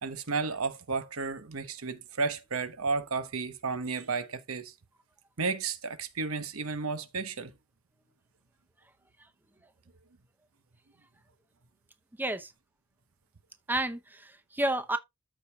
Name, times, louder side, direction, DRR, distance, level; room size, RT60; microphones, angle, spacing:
voice 1, 0.0-4.7 5.4-7.5, right 4 dB, 85° right, 1.0 m, -33 dB
voice 2, 12.2-12.5 13.7-15.0, right 1 dB, 10° right, 0.7 m, -30 dB
13.5 x 5.1 x 2.3 m
head